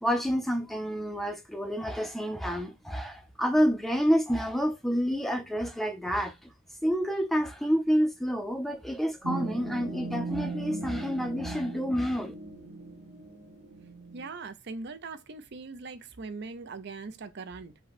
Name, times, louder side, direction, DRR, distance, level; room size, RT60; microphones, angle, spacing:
voice 1, 0.0-6.5 6.8-12.3, equal, ahead, 0.5 m, -28 dB
sound 1, 9.2-14.2, right 3 dB, 90° right, 1.3 m, -38 dB
voice 2, 14.1-17.8, right 4 dB, 55° right, 0.6 m, -41 dB
5.4 x 2.2 x 4.0 m
head